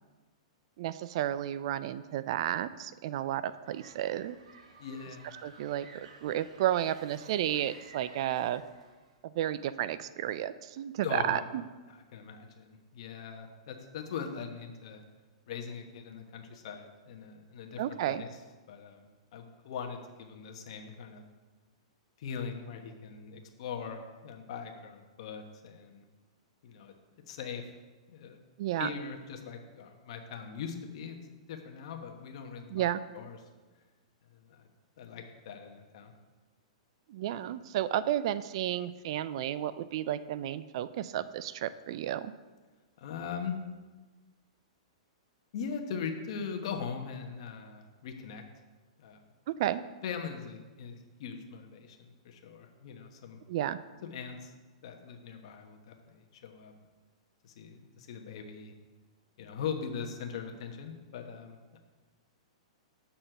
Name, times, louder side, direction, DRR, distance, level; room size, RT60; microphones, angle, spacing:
voice 1, 0.8-4.4 5.4-8.6 9.4-11.6 17.8-18.2 28.6-28.9 32.7-33.0 37.1-42.3 49.6-49.8 53.5-53.8, right 12 dB, 55° right, 15 dB, 0.4 m, -32 dB
sound 1, 3.6-9.2, right 4 dB, 80° right, 1.0 m, -54 dB
voice 2, 4.8-5.3 11.0-11.4 11.9-15.0 15.5-18.3 18.7-19.0 19.3-21.2 22.2-26.0 26.6-26.9 27.3-27.7 28.1-28.4 28.8-31.2 31.5-32.8 33.1-33.4 34.3-34.6 35.0-36.1 43.0-43.6 45.5-48.4 49.0-49.2 50.0-53.4 54.1-54.5 54.8-56.7 57.4-58.7 59.4-61.8, left 6 dB, 60° left, 4 dB, 1.1 m, -41 dB
7.7 x 4.2 x 6.6 m, 1.3 s
hypercardioid pair, 140°, 3 cm